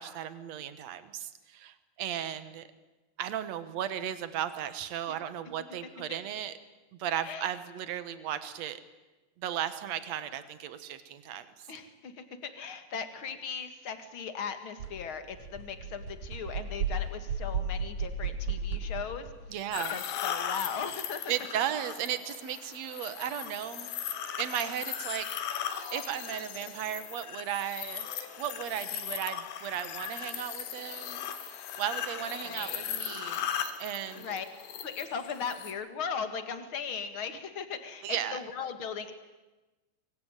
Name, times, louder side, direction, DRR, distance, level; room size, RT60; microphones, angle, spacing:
voice 1, 0.0-2.7 3.2-6.6 7.0-8.8 9.4-11.7 19.5-20.0 21.3-25.3 25.9-28.1 28.4-33.5 33.8-34.4 38.0-38.4, right 10 dB, 75° right, 12 dB, 1.5 m, -35 dB
voice 2, 11.7-19.3 19.9-21.3 32.4-32.9 34.1-34.5 34.8-39.1, left 6 dB, 45° left, 9 dB, 1.8 m, -38 dB
sound 1, 14.8-14.9 15.2-19.4, right 4 dB, 50° right, 5.0 m, -34 dB
sound 2, 19.7-35.7, left 9 dB, 75° left, 3.9 m, -38 dB
26.0 x 23.0 x 9.1 m, 1.1 s
omnidirectional pair, 5.0 m